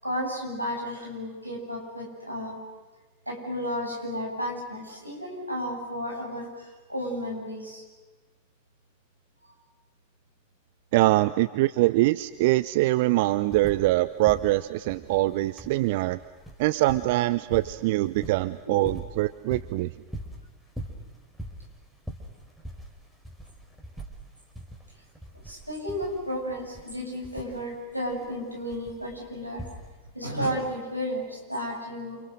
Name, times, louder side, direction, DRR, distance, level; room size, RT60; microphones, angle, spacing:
voice 1, 0.0-2.6 3.3-7.8 18.7-18.8 25.3-29.6 30.1-32.2, equal, 90° right, 0 dB, 7.5 m, -33 dB
voice 2, 10.9-16.2 16.6-19.9, right 18 dB, 50° right, 15 dB, 0.7 m, -23 dB
sound 1, 12.2-12.3 12.5-14.0 14.2-30.2 31.3-31.4, right 1 dB, ahead, 4.8 m, -43 dB
29.5 x 29.0 x 6.5 m, 1.3 s
figure-of-eight pair, 90°, 0 cm